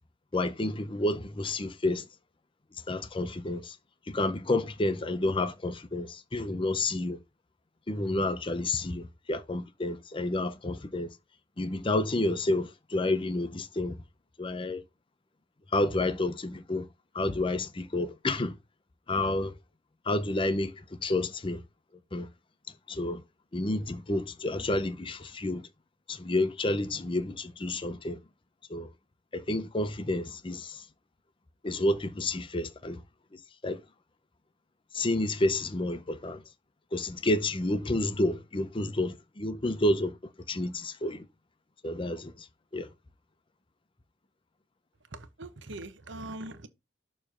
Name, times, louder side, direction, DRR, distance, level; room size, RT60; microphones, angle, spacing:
voice 1, 0.3-2.1 2.9-3.8 4.1-7.2 7.9-11.1 11.6-14.0 14.4-14.8 15.7-16.9 17.1-18.6 19.1-19.5 20.1-21.6 22.1-22.3 22.9-23.2 23.5-25.7 26.1-28.2 28.7-28.9 29.3-30.8 31.6-33.0 33.3-33.8 34.9-36.4 36.9-40.2 40.5-41.3 41.8-42.5 42.7-42.9, left 2 dB, 25° left, 0.6 m, -30 dB
voice 2, 45.1-46.7, right 2 dB, 75° right, 0.9 m, -41 dB
6.8 x 3.2 x 6.0 m
head